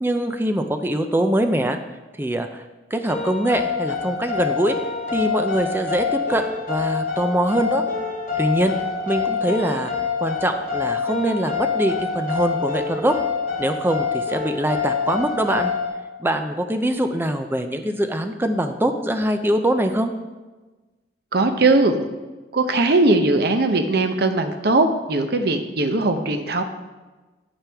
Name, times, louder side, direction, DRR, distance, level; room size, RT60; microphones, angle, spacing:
voice 1, 0.0-1.8 2.2-2.6 2.9-4.8 5.1-7.8 8.4-8.7 9.1-9.9 10.2-13.2 13.6-15.7 16.2-20.1, right 1 dB, 10° right, 7 dB, 0.5 m, -23 dB
sound 1, 3.1-15.9, left 5 dB, 45° left, 3.2 m, -26 dB
voice 2, 21.3-22.0 22.5-26.6, right 2 dB, 60° right, 6 dB, 0.8 m, -19 dB
8.9 x 8.8 x 3.5 m, 1.2 s
head